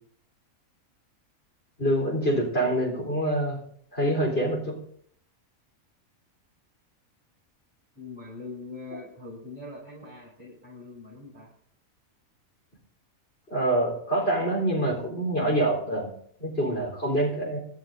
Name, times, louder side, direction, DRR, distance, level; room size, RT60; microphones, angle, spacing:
voice 1, 1.8-3.6 3.9-4.8 13.5-16.1 16.4-17.6, right 1 dB, 45° left, -1 dB, 4.2 m, -26 dB
voice 2, 7.9-11.5, left 3 dB, 25° right, -9 dB, 7.7 m, -42 dB
28.0 x 13.0 x 2.7 m, 0.65 s
omnidirectional pair, 1.5 m